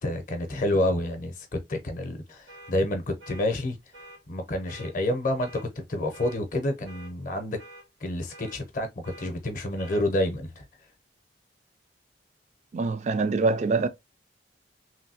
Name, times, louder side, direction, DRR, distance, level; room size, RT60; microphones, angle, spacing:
voice 1, 0.0-3.8 4.3-7.6 8.0-10.7, left 1 dB, 45° left, 0.6 m, -29 dB
sound 1, 2.5-2.7 3.2-3.5 3.9-4.2 4.7-4.9 5.4-5.7 6.1-6.4 6.8-7.1 7.6-7.8 8.3-8.6 9.0-9.3 9.8-10.0, right 1 dB, 85° right, 1.7 m, -47 dB
voice 2, 12.7-13.9, right 3 dB, 40° right, 0.3 m, -24 dB
3.1 x 2.6 x 2.7 m
head